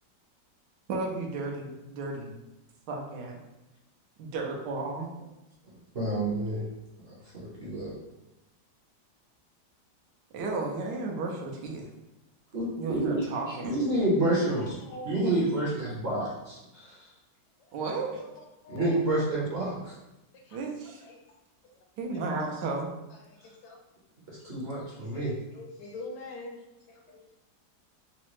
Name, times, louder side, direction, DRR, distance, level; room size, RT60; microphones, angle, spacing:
voice 1, 0.9-2.3 2.9-3.4 4.2-5.1 10.3-11.9 12.8-13.8 17.7-18.2 20.5-21.0 22.0-22.9, right 3 dB, 80° right, 0 dB, 1.2 m, -33 dB
voice 2, 5.9-6.6 7.1-7.9 12.5-13.2 13.6-14.7 15.0-17.1 18.7-19.9 24.4-25.3, right 1 dB, 50° right, -6 dB, 0.8 m, -29 dB
voice 3, 14.1-15.1 18.2-18.3 18.6-19.0 20.4-20.6 21.0-21.2 23.1-23.8 25.1-26.6 26.9-27.4, left 2 dB, 75° left, 1 dB, 1.1 m, -43 dB
3.8 x 2.1 x 3.0 m, 0.97 s
omnidirectional pair, 1.9 m